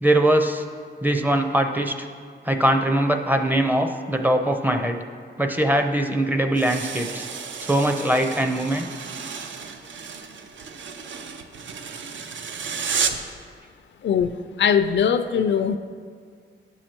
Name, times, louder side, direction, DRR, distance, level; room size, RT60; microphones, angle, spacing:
voice 1, 0.0-0.6 1.0-2.1 2.4-5.0 5.4-7.3 7.6-8.9, right 1 dB, 10° right, 5 dB, 0.5 m, -21 dB
sound 1, 6.5-13.3, right 6 dB, 85° right, 0.6 m, -32 dB
voice 2, 14.0-15.8, left 7 dB, 75° left, 10 dB, 0.4 m, -21 dB
11.0 x 6.4 x 4.4 m, 2.1 s
wide cardioid pair, 150°, 19 cm